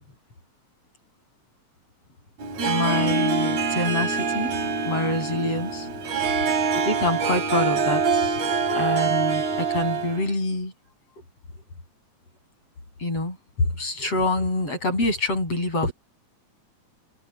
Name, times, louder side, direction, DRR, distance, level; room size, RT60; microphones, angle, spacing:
Harp, 2.4-10.3, right 5 dB, 75° right, 4.7 m, -25 dB
voice 1, 2.6-4.6 4.8-5.9 6.8-8.4 8.7-10.7 13.0-15.9, left 2 dB, 50° left, 8.3 m, -26 dB
omnidirectional pair, 3.4 m